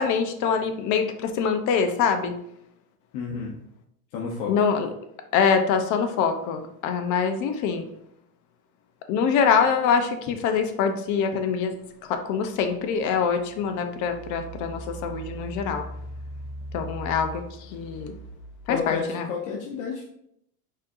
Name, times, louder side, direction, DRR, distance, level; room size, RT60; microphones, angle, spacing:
voice 1, 0.0-2.3 4.5-4.9 5.3-7.9 9.1-11.7 12.1-15.8 16.7-17.4 17.7-18.1 18.7-19.2, left 6 dB, 45° left, 7 dB, 0.6 m, -24 dB
voice 2, 3.1-3.6 4.1-4.5 18.7-20.0, left 5 dB, 70° left, -4 dB, 1.0 m, -30 dB
Engine, 12.3-12.4 13.0-18.9, right 1 dB, 30° right, 0.4 m, -40 dB
4.4 x 3.6 x 2.5 m, 0.73 s
supercardioid pair, 125°, 43 cm